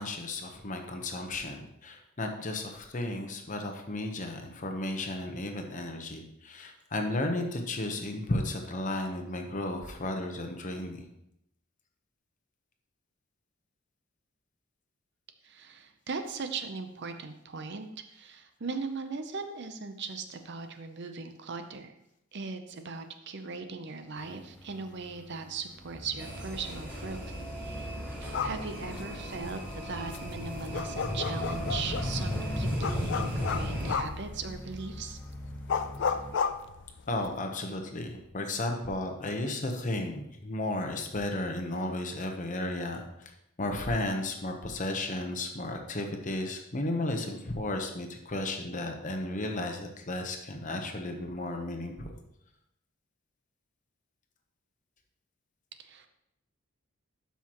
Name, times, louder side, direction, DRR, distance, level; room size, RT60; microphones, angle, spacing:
voice 1, 0.0-11.1 37.1-43.3 43.6-52.1, left 1 dB, 35° left, 4 dB, 0.9 m, -34 dB
voice 2, 15.4-21.9 22.3-27.2 27.6-27.9 28.2-35.2 55.8-56.1, right 4 dB, 50° right, 8 dB, 0.7 m, -39 dB
sound 1, 24.2-36.4, left 1 dB, 10° left, 0.5 m, -45 dB
sound 2, 26.2-33.9, equal, 10° right, 3.5 m, -35 dB
sound 3, 28.2-37.4, left 6 dB, 55° left, 0.4 m, -35 dB
12.0 x 5.8 x 3.0 m, 0.82 s
head